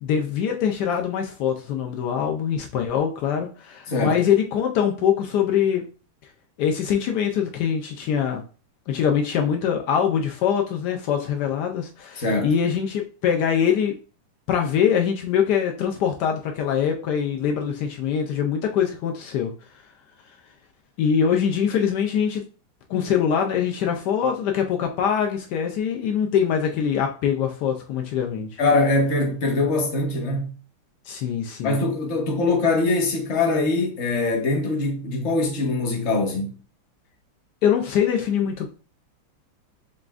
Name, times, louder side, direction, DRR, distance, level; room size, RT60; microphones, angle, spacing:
voice 1, 0.0-5.8 6.6-8.4 8.9-13.9 14.5-19.5 21.0-22.4 22.9-28.5 31.1-31.8 37.6-38.7, left 8 dB, 90° left, 0.9 m, -23 dB
voice 2, 12.2-12.5 28.6-30.5 31.6-36.6, left 2 dB, 45° left, 0.9 m, -22 dB
6.8 x 2.4 x 2.4 m
omnidirectional pair, 2.4 m